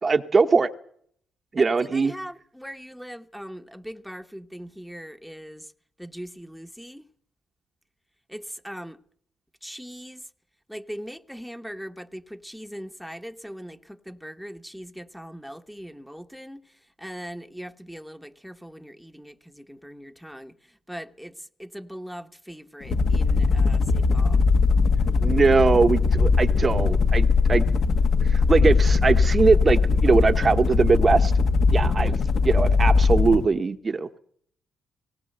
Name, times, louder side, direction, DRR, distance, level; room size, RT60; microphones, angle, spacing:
voice 1, 0.0-0.7 1.5-2.1 25.2-27.6 28.2-31.3 31.7-32.2 32.4-34.1, right 4 dB, 35° right, 0.9 m, -21 dB
voice 2, 1.6-5.7 6.0-7.0 8.3-9.0 9.6-10.2 10.7-16.6 17.0-20.5 20.9-24.4 31.8-32.2, equal, ahead, 1.0 m, -40 dB
sound 1, 22.8-33.4, left 4 dB, 60° left, 1.4 m, -20 dB
19.5 x 18.0 x 7.9 m
cardioid pair, 90°, 0 cm